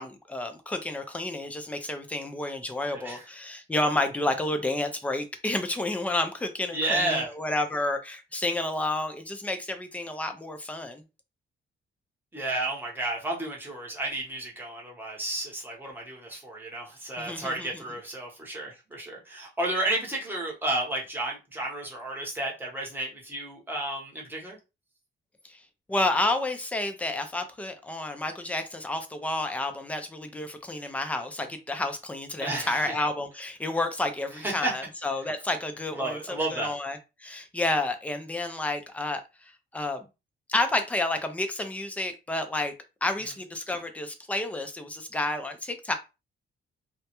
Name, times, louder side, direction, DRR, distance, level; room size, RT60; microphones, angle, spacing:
voice 1, 0.0-11.0 17.2-17.8 25.5-25.6 25.9-39.2 39.7-40.0 40.5-42.7 43.0-45.9, left 2 dB, 5° left, 0.3 m, -30 dB
voice 2, 2.9-3.3 6.7-7.3 12.3-24.6 32.4-33.0 34.3-34.7 35.9-36.7, right 1 dB, 10° right, 0.8 m, -32 dB
2.2 x 2.0 x 2.8 m
cardioid pair, 145°, 20 cm